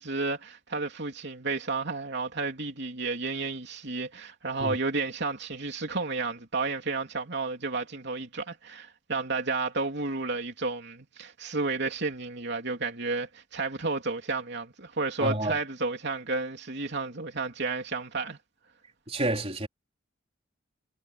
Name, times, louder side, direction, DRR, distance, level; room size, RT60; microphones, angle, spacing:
voice 1, 0.0-18.4, right 3 dB, 55° right, 3.4 m, -32 dB
voice 2, 15.2-15.5 19.1-19.7, right 1 dB, 30° right, 3.9 m, -29 dB
head